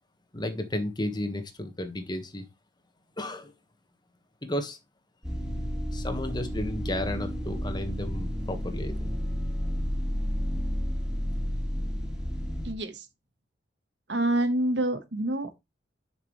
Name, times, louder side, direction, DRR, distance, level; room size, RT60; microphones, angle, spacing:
voice 1, 0.3-2.4 3.2-3.5 4.4-4.8 5.9-9.1, left 1 dB, 25° left, 1.5 m, -33 dB
sound 1, 5.2-12.7, equal, 5° right, 3.8 m, -31 dB
voice 2, 14.1-15.6, right 1 dB, 70° right, 1.5 m, -27 dB
11.0 x 6.0 x 3.2 m
head